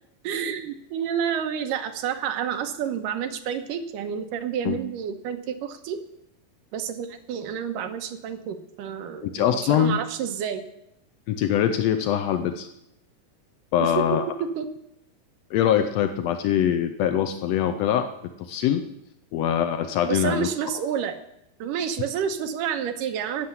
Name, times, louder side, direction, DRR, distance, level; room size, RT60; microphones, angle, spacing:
voice 1, 0.2-6.0 6.7-10.6 13.8-13.9 14.6-14.7 20.1-21.2 21.6-23.5, right 8 dB, 80° right, 7 dB, 2.5 m, -29 dB
voice 2, 9.2-10.0 11.3-12.7 13.7-14.2 15.5-18.1 18.4-18.8 19.3-20.5, left 10 dB, 85° left, 8 dB, 1.4 m, -23 dB
11.5 x 7.3 x 9.5 m, 0.78 s
omnidirectional pair, 3.9 m